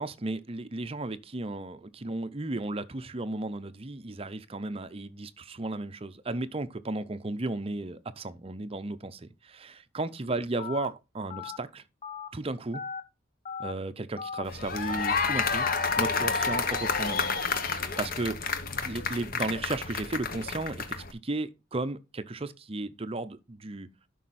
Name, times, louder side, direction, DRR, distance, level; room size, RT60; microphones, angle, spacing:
voice 1, 0.0-11.8 12.3-12.8 13.6-15.7 16.0-17.3 17.7-18.4 18.8-23.9, right 2 dB, 30° right, 0.6 m, -34 dB
Telephone, 10.6-10.9 11.3-11.6 12.0-12.3 12.7-13.0 13.4-13.7 14.2-14.4 14.9-15.2 15.6-15.9 16.3-16.6, left 5 dB, 30° left, 0.9 m, -37 dB
sound 1, 14.5-21.1, left 5 dB, 45° left, 1.1 m, -30 dB
11.5 x 5.4 x 4.1 m
head